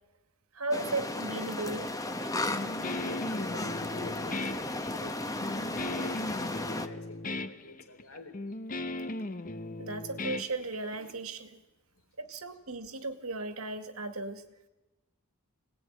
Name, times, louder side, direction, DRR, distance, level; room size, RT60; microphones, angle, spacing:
voice 1, 0.5-2.0 9.8-11.6 12.2-14.4, right 2 dB, 85° right, 9 dB, 2.1 m, -36 dB
sound 1, 0.7-6.9, left 2 dB, 15° left, 1.2 m, -35 dB
voice 2, 2.5-8.3, left 2 dB, 80° left, 6 dB, 3.8 m, -47 dB
Guitar, 2.5-11.1, left 2 dB, 40° left, 1.0 m, -38 dB
25.5 x 18.5 x 9.6 m, 1.1 s
head